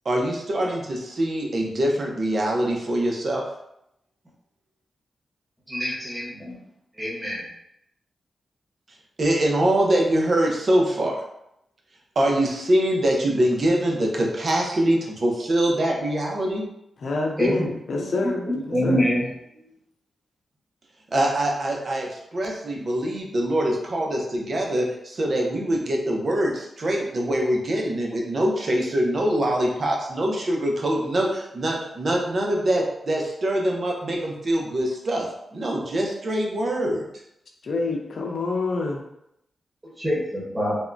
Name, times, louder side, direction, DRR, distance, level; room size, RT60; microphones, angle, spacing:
voice 1, 0.0-3.4 9.2-11.2 12.2-16.6 21.1-37.0, right 1 dB, 55° right, 0 dB, 0.6 m, -24 dB
voice 2, 5.7-6.6 7.0-7.4 17.4-17.7 18.0-19.3 40.0-40.8, equal, 15° right, -6 dB, 1.1 m, -25 dB
voice 3, 17.0-19.0 37.6-39.0, left 3 dB, 65° left, 0 dB, 0.6 m, -27 dB
3.5 x 2.1 x 2.5 m, 0.80 s
cardioid pair, 70°, 0 cm